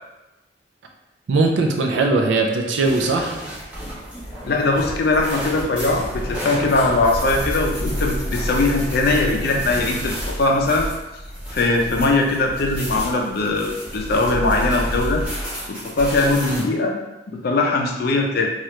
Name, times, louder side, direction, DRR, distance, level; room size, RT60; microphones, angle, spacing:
voice 1, 1.3-3.4 16.4-16.6, right 3 dB, 75° right, 2 dB, 0.4 m, -20 dB
sound 1, 2.8-16.6, equal, 5° right, 0.9 m, -30 dB
voice 2, 4.4-10.9 11.5-15.2 15.7-17.0 17.3-18.5, left 2 dB, 55° left, 1 dB, 0.4 m, -20 dB
2.9 x 2.4 x 3.1 m, 1.0 s
head